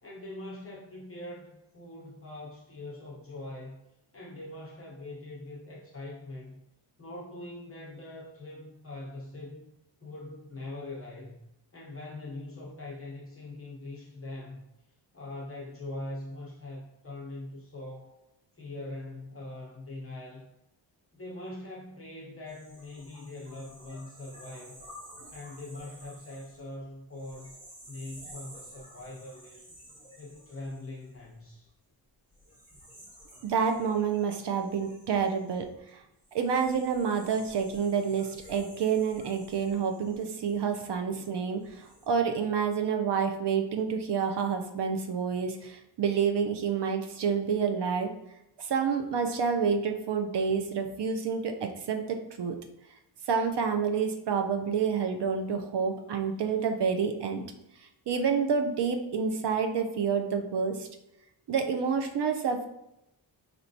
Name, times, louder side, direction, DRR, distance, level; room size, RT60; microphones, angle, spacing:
voice 1, 0.0-3.8 4.1-6.6 7.0-9.7 10.0-11.4 11.7-14.6 15.1-18.2 18.6-20.5 21.1-24.8 25.3-27.5 27.9-29.7 30.2-31.7, left 2 dB, 30° left, -4 dB, 0.8 m, -42 dB
sound 1, 22.5-31.7 32.3-41.1 41.6-42.1, equal, 15° right, 1.3 m, -52 dB
voice 2, 33.4-35.6 36.3-48.1 48.6-52.6 53.3-57.5 58.1-60.9 61.5-62.7, right 6 dB, 60° right, 5 dB, 0.6 m, -28 dB
4.4 x 3.1 x 2.7 m, 0.86 s
wide cardioid pair, 130°, 46 cm